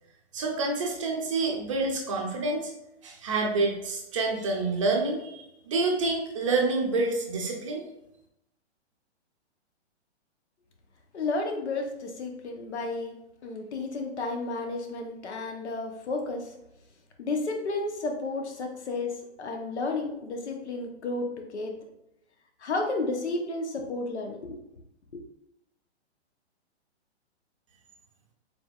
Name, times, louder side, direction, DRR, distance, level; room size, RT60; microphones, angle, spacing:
voice 1, 0.3-2.7 3.0-7.8, right 3 dB, 30° right, 0 dB, 0.6 m, -28 dB
voice 2, 11.1-13.2 13.4-16.5 17.2-19.1 19.4-21.8 22.6-24.6 25.1-25.2, left 3 dB, 75° left, 3 dB, 1.0 m, -32 dB
5.0 x 3.4 x 2.4 m, 0.83 s
hypercardioid pair, 170°, 34 cm